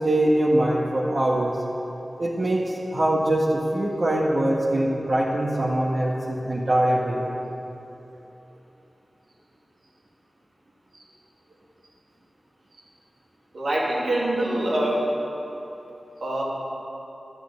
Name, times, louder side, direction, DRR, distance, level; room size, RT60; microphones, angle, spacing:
voice 1, 0.0-1.6 2.2-7.3, right 1 dB, 65° right, -6 dB, 2.1 m, -23 dB
voice 2, 13.5-15.0 16.2-16.4, right 1 dB, 90° right, -5 dB, 3.0 m, -24 dB
12.0 x 10.5 x 8.4 m, 3.0 s
cardioid pair, 45°, 0 cm